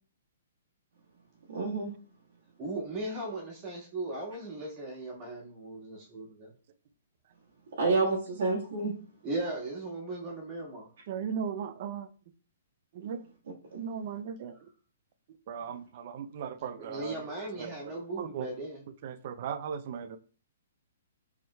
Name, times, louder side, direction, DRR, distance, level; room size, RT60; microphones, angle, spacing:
voice 1, 1.5-1.9 7.8-8.9 13.7-13.8, right 3 dB, 75° right, -5 dB, 1.4 m, -28 dB
voice 2, 2.6-6.5 9.2-10.9 16.7-18.8, right 2 dB, 25° right, -3 dB, 1.6 m, -37 dB
voice 3, 11.1-12.1 13.0-13.2 13.8-14.5 15.5-17.1 17.6-17.7 18.2-18.5 19.0-20.2, right 7 dB, 40° right, 11 dB, 0.4 m, -37 dB
5.2 x 3.6 x 2.2 m, 0.40 s
hypercardioid pair, 165°, 0 cm